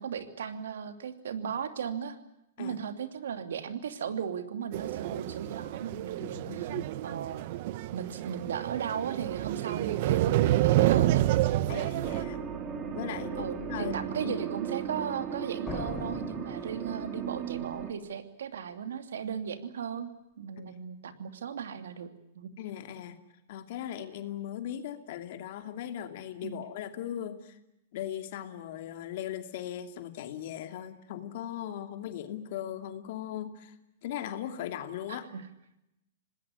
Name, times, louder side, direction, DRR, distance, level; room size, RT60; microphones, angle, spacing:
voice 1, 0.0-2.2 2.6-6.7 7.0-7.4 7.9-11.3 13.4-20.1 20.4-22.5 26.4-26.6 35.1-35.4, right 7 dB, 85° right, 8 dB, 2.8 m, -36 dB
sound 1, 4.7-12.2, right 15 dB, 50° right, 0.9 m, -28 dB
voice 2, 6.2-6.8 11.7-12.4 12.9-14.4 20.7-20.8 22.6-23.2 23.5-27.6 27.9-33.8 34.0-35.3, left 11 dB, 55° left, 7 dB, 2.6 m, -38 dB
sound 2, 12.0-17.9, right 7 dB, 25° right, 2.9 m, -36 dB
sound 3, 15.7-17.5, left 4 dB, 10° left, 4.8 m, -41 dB
27.0 x 19.5 x 9.7 m, 0.88 s
hypercardioid pair, 140°, 0 cm